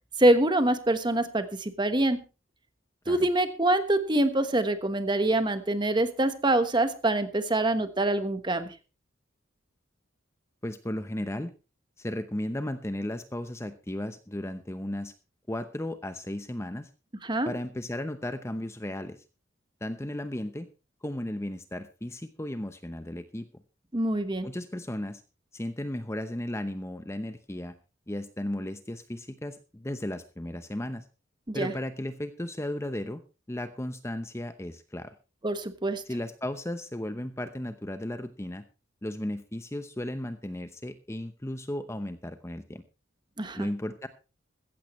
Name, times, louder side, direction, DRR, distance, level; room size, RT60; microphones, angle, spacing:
voice 1, 0.2-2.2 3.1-8.7 17.2-17.5 23.9-24.5 31.5-31.7 35.4-36.0 43.4-43.7, right 1 dB, 25° right, 10 dB, 1.2 m, -25 dB
voice 2, 10.6-11.5 12.0-15.1 15.5-16.9 17.5-19.2 19.8-20.7 21.0-23.5 24.4-25.2 25.5-27.7 28.1-31.0 31.5-33.2 33.5-35.1 36.0-38.6 39.0-42.8 43.5-44.1, left 1 dB, 15° left, 10 dB, 0.8 m, -35 dB
15.0 x 15.0 x 3.1 m, 0.31 s
head